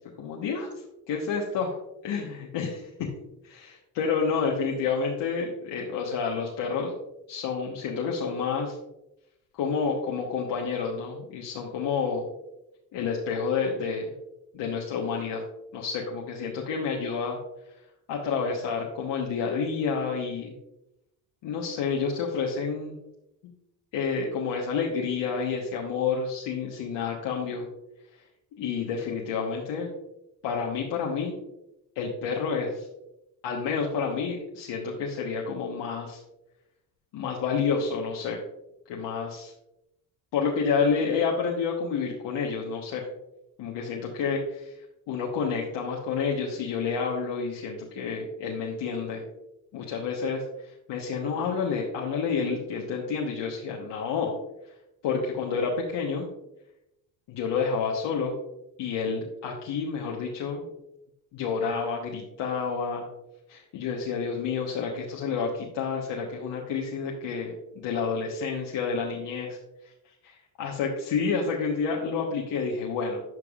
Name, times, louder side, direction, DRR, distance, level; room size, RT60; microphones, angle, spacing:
voice 1, 0.2-0.7 1.1-1.7 2.0-2.7 3.4-6.9 7.3-8.8 9.6-12.3 12.9-14.1 14.5-15.4 15.7-17.4 18.1-20.5 21.4-23.0 23.9-27.7 28.6-29.9 30.4-31.4 31.9-32.9 33.4-36.2 37.1-38.4 38.9-39.5 40.3-43.1 43.6-44.8 45.1-49.2 49.7-54.3 55.0-56.3 57.3-58.4 58.8-60.7 61.3-63.0 63.5-69.6 70.6-73.2, left 5 dB, 65° left, -2 dB, 1.3 m, -29 dB
12.0 x 4.7 x 2.4 m, 0.88 s
supercardioid pair, 85°, 46 cm